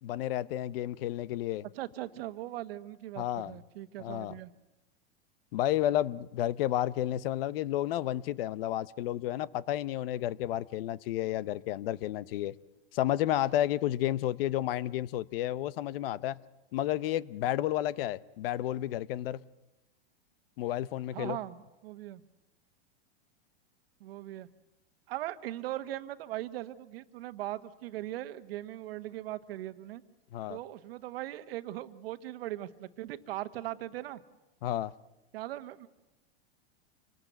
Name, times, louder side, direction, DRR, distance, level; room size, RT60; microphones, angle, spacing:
voice 1, 0.0-1.7 3.2-3.5 4.0-4.3 5.5-12.5 12.9-16.4 16.7-19.4 20.6-21.4 30.3-30.6 34.6-34.9, left 13 dB, 65° left, 0.8 m, -31 dB
voice 2, 1.7-4.5 21.1-22.2 24.0-24.5 25.1-30.0 30.5-34.2 35.3-35.9, right 14 dB, 70° right, 1.4 m, -39 dB
27.0 x 19.0 x 8.0 m
supercardioid pair, 130°, 31 cm